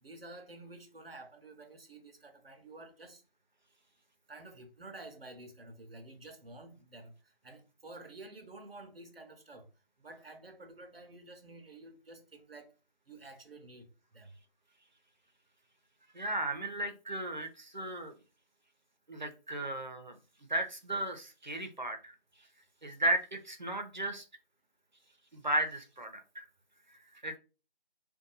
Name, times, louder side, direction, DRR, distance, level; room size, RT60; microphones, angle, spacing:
voice 1, 0.0-3.2 4.3-7.1 7.4-9.7 10.0-12.7 13.1-14.3, right 2 dB, 80° right, 0.8 m, -50 dB
voice 2, 16.1-18.1 19.1-20.1 20.5-22.1 22.8-24.2 25.3-26.5 26.9-27.4, right 1 dB, 50° right, 0.6 m, -35 dB
2.6 x 2.3 x 3.8 m
figure-of-eight pair, 170°, 29 cm